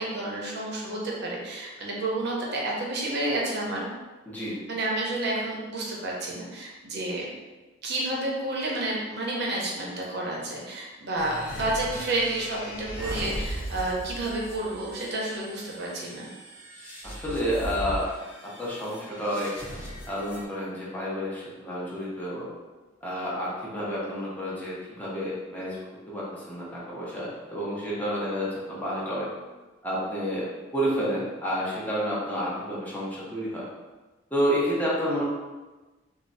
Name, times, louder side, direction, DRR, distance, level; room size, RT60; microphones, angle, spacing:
voice 1, 0.0-3.9 4.4-7.3 7.8-16.3, right 2 dB, 60° right, -3 dB, 0.6 m, -30 dB
voice 2, 4.3-4.6 17.0-18.1 18.6-19.5 20.1-22.5 23.0-25.8 26.1-29.3 29.8-33.7 34.3-35.2, equal, 10° left, -7 dB, 0.6 m, -30 dB
sound 1, 11.2-20.4, right 1 dB, 70° left, 0.8 m, -38 dB
3.1 x 2.0 x 2.6 m, 1.2 s
head